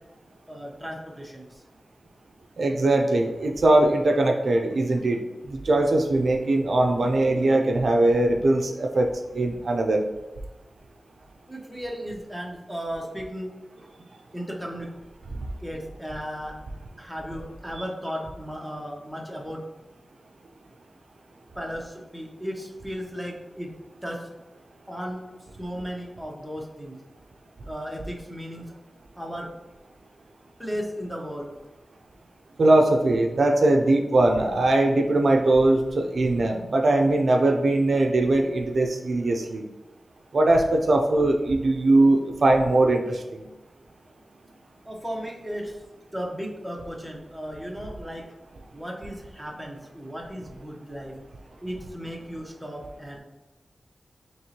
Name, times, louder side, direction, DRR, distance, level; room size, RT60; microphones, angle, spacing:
voice 1, 0.5-1.6 11.5-13.5 14.3-14.9 15.6-16.5 17.0-19.6 21.6-23.7 24.0-24.3 24.9-25.2 25.6-27.0 27.7-28.7 29.2-29.5 30.6-31.5 44.8-45.8 46.1-48.2 48.7-51.1 51.6-53.2, equal, ahead, -2 dB, 0.8 m, -35 dB
voice 2, 2.6-5.2 5.5-9.1 9.3-10.0 32.6-39.6 40.3-43.4, right 2 dB, 70° right, 3 dB, 0.4 m, -21 dB
4.4 x 3.0 x 2.8 m, 1.1 s
wide cardioid pair, 95°, 0 cm